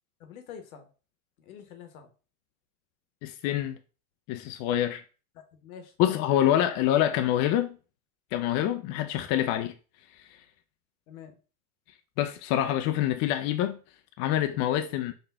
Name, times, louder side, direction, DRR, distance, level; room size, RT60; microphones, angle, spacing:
voice 1, 0.2-0.9 1.5-2.1 5.6-6.2 6.5-6.8 8.9-9.1 11.1-11.4, left 7 dB, 70° left, 1.0 m, -46 dB
voice 2, 3.2-3.8 4.3-5.0 6.0-7.8 8.3-9.7 10.2-10.3 12.2-13.8 14.2-15.1, left 12 dB, 40° left, 0.5 m, -26 dB
4.7 x 2.5 x 3.4 m
hypercardioid pair, 85°, 44 cm